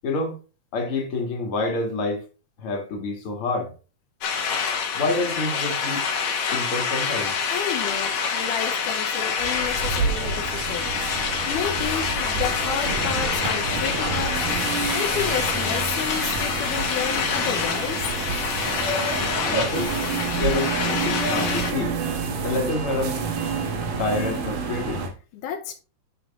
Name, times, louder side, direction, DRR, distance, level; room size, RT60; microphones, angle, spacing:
voice 1, 0.0-0.4 0.7-2.2 2.6-3.7 4.9-6.1 6.5-7.4 19.5-19.9 20.4-22.0 22.4-23.2 24.0-25.0, left 2 dB, 45° left, 2.8 m, -27 dB
sound 1, 4.2-21.7, left 6 dB, 65° left, 2.7 m, -26 dB
voice 2, 7.5-10.9 11.1-18.1 25.3-25.7, left 8 dB, 85° left, 2.4 m, -31 dB
sound 2, 9.4-25.1, right 4 dB, 85° right, 3.4 m, -29 dB
11.0 x 6.9 x 2.5 m
omnidirectional pair, 3.6 m